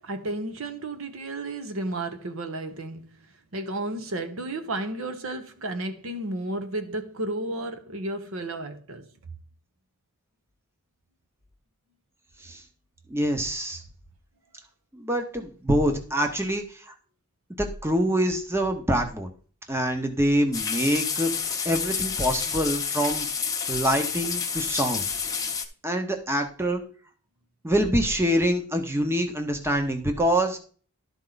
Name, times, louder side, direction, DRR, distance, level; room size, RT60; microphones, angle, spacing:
voice 1, 0.0-3.1 3.5-9.1, right 2 dB, 65° right, 1.0 m, -32 dB
voice 2, 13.1-13.8 14.9-16.9 17.6-19.3 19.7-23.3 23.7-25.0 25.8-26.8 27.6-30.6, equal, 10° right, 0.9 m, -25 dB
Light Rain, 20.5-25.6, left 6 dB, 15° left, 0.8 m, -29 dB
12.0 x 4.4 x 4.0 m
head